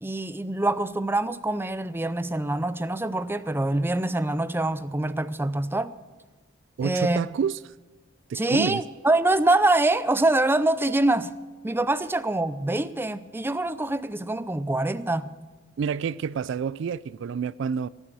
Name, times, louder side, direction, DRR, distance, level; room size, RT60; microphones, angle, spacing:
voice 1, 0.0-5.9 6.8-7.2 8.3-11.3 11.6-15.3, right 2 dB, 10° right, 0.5 m, -25 dB
voice 2, 6.8-7.6 8.3-8.8 15.8-17.9, right 6 dB, 65° right, 0.3 m, -28 dB
17.5 x 9.9 x 6.3 m
head